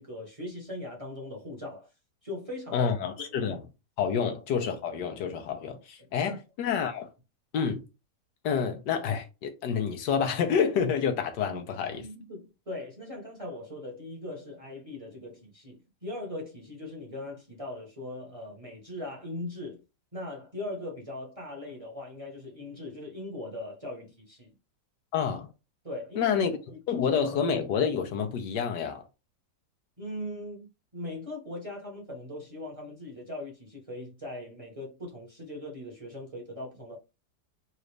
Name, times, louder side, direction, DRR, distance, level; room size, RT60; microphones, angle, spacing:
voice 1, 0.0-1.9 2.2-2.9 6.0-6.4 11.5-11.6 12.0-19.8 20.1-24.5 25.8-26.4 26.7-27.1 30.0-37.0, left 1 dB, 25° right, 1.0 m, -40 dB
voice 2, 2.7-3.6 4.0-7.1 7.5-7.8 8.4-12.0 25.1-25.5 26.2-26.6 26.9-29.0, left 7 dB, 85° left, 1.4 m, -28 dB
4.0 x 2.5 x 3.2 m
omnidirectional pair, 1.8 m